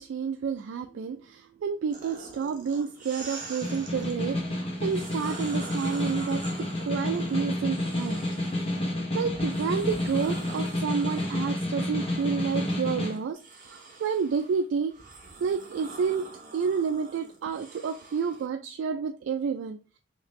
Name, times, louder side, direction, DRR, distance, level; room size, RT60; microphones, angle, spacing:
voice 1, 0.0-6.4 6.8-8.2 9.1-15.0 15.4-16.3 16.5-19.8, right 6 dB, 85° right, 0.3 m, -30 dB
sound 1, 1.9-4.2 4.7-8.8 9.3-18.5, right 3 dB, 45° right, 0.9 m, -45 dB
Snare drum, 3.4-13.2, left 1 dB, 30° left, 0.9 m, -30 dB
3.2 x 2.8 x 3.1 m
head